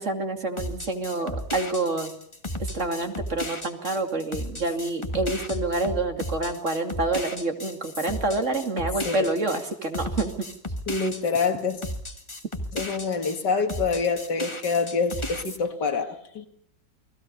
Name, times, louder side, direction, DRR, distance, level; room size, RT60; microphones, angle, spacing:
voice 1, 0.0-2.1 2.6-10.5, right 2 dB, 40° right, 5 dB, 2.9 m, -27 dB
sound 1, 0.6-13.4 13.7-15.6, left 1 dB, 15° left, 1.7 m, -34 dB
voice 2, 10.9-11.8 12.7-16.5, left 4 dB, 70° left, 7 dB, 2.7 m, -26 dB
30.0 x 21.0 x 5.5 m, 0.67 s
omnidirectional pair, 1.9 m